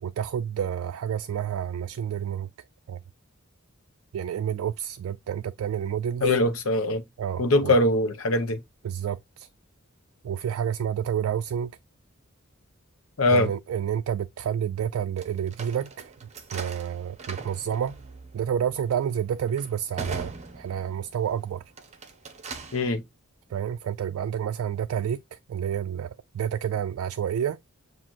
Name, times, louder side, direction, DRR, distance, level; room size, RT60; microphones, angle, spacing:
voice 1, 0.0-2.5 2.9-3.0 4.1-6.3 7.2-7.8 8.8-9.5 10.2-11.7 13.3-16.1 16.5-18.0 18.3-20.3 20.6-21.6 23.5-27.6, right 9 dB, 75° right, 0.3 m, -29 dB
voice 2, 6.2-7.0 7.4-8.6 13.2-13.5 22.7-23.0, left 2 dB, 75° left, 0.9 m, -22 dB
sound 1, 15.2-21.2 21.7-22.9, right 3 dB, 35° right, 0.7 m, -41 dB
7.3 x 2.5 x 2.5 m
head